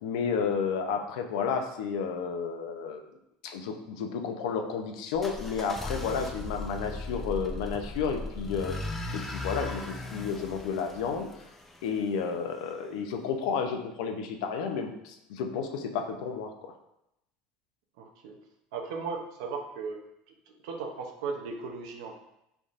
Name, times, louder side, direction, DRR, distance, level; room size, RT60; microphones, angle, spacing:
voice 1, 0.0-3.0 3.4-11.3 11.8-16.7, left 6 dB, 85° left, 5 dB, 0.5 m, -32 dB
sound 1, 5.1-12.0, left 2 dB, 10° left, 0.4 m, -38 dB
voice 2, 18.0-18.4 18.7-20.0 20.5-22.1, right 4 dB, 90° right, 3 dB, 0.6 m, -36 dB
4.1 x 3.3 x 2.4 m, 0.84 s
cardioid pair, 145°, 3 cm